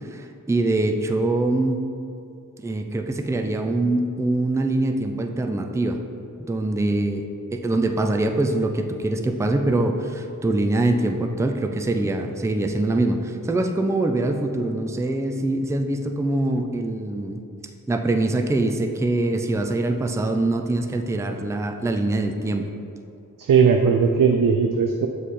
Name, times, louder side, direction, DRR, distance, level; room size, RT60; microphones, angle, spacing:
voice 1, 0.1-1.8 2.6-6.0 6.4-7.2 7.5-17.4 17.9-22.7, right 2 dB, 10° right, 4 dB, 0.4 m, -23 dB
voice 2, 23.4-25.1, right 6 dB, 65° right, 4 dB, 0.5 m, -18 dB
7.3 x 3.3 x 4.2 m, 2.6 s
cardioid pair, 55°, 36 cm